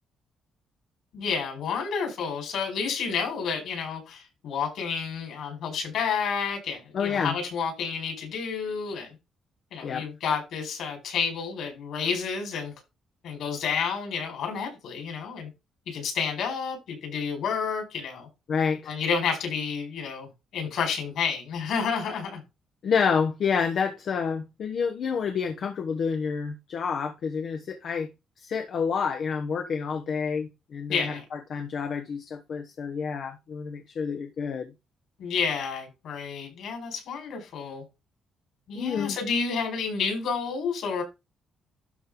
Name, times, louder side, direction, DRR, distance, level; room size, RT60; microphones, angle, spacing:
voice 1, 1.1-9.1 9.7-12.7 13.2-15.5 15.9-18.3 18.9-22.4 30.9-31.2 35.2-37.8 38.7-41.0, left 6 dB, 75° left, 5.0 m, -30 dB
voice 2, 6.9-7.4 9.8-10.1 18.5-18.9 22.8-28.1 28.4-34.7 38.7-39.2, left 6 dB, 60° left, 1.1 m, -29 dB
12.5 x 4.2 x 3.9 m
cardioid pair, 90°, 0 cm